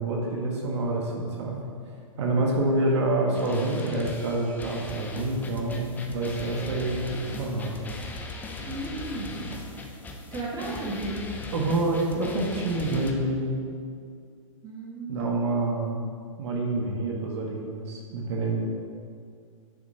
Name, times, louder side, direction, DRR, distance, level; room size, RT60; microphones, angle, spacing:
voice 1, 0.0-1.6 2.2-7.8 11.5-13.5 15.1-16.0 16.4-18.6, right 2 dB, 55° right, -1 dB, 1.2 m, -27 dB
sound 1, 3.3-13.1, left 2 dB, 10° left, 0.6 m, -38 dB
voice 2, 8.6-9.4 10.3-11.2 14.6-15.4, right 2 dB, 20° right, -3 dB, 1.5 m, -34 dB
9.0 x 6.2 x 2.8 m, 2.3 s
hypercardioid pair, 120°, 17 cm